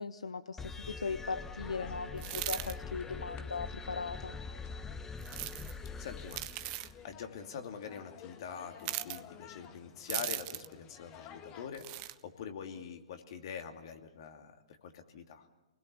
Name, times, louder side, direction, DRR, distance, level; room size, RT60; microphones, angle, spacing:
voice 1, 0.0-4.4, left 4 dB, 85° left, 12 dB, 0.8 m, -39 dB
sound 1, 0.6-7.2, left 4 dB, 10° left, 0.7 m, -44 dB
sound 2, 1.4-11.7, left 7 dB, 30° left, 1.6 m, -54 dB
sound 3, 2.2-2.7 5.2-5.7 6.3-6.9 8.8-9.2 10.1-10.7 11.7-12.1, right 18 dB, 35° right, 0.9 m, -38 dB
voice 2, 6.0-15.5, left 7 dB, 55° left, 5 dB, 2.7 m, -45 dB
28.5 x 20.5 x 7.1 m, 1.0 s
hypercardioid pair, 125°, 3 cm